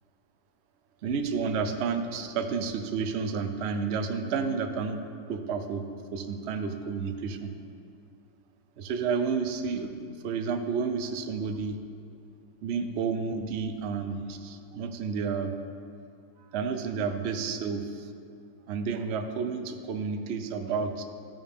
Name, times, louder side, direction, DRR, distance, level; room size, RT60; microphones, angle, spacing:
voice 1, 1.0-5.0 5.3-5.9 6.1-7.6 8.8-11.8 12.6-15.5 16.4-18.1 18.7-21.0, right 5 dB, 75° right, 7 dB, 0.6 m, -31 dB
14.5 x 9.0 x 3.6 m, 2.3 s
omnidirectional pair, 2.1 m